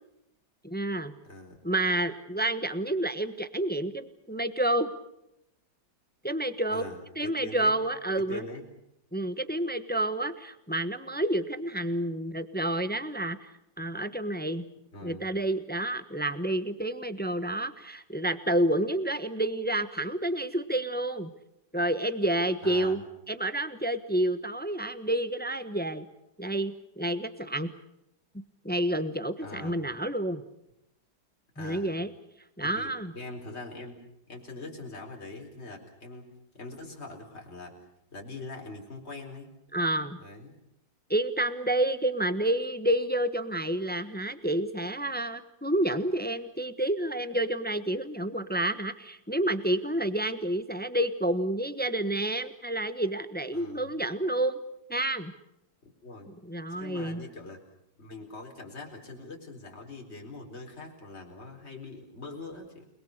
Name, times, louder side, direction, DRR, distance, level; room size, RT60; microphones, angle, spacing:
voice 1, 0.6-1.1 1.6-4.9 6.2-6.8 7.2-8.4 9.1-13.5 13.8-14.7 15.0-21.3 21.7-23.0 23.3-26.1 26.4-27.7 28.6-30.4 31.6-32.1 32.6-33.1 39.7-40.2 41.1-54.6 54.9-55.3 56.4-57.2, right 1 dB, 5° left, 11 dB, 0.9 m, -29 dB
voice 2, 1.2-1.6 6.7-7.8 8.2-8.6 14.9-15.2 22.6-23.0 29.4-29.8 31.5-31.9 32.6-34.0 34.3-36.3 36.5-37.8 38.1-39.5 40.2-40.5 53.5-53.9 56.0-56.3 56.7-57.6 58.0-62.9, left 2 dB, 35° left, 1 dB, 4.7 m, -42 dB
29.5 x 21.5 x 6.6 m, 0.80 s
omnidirectional pair, 2.0 m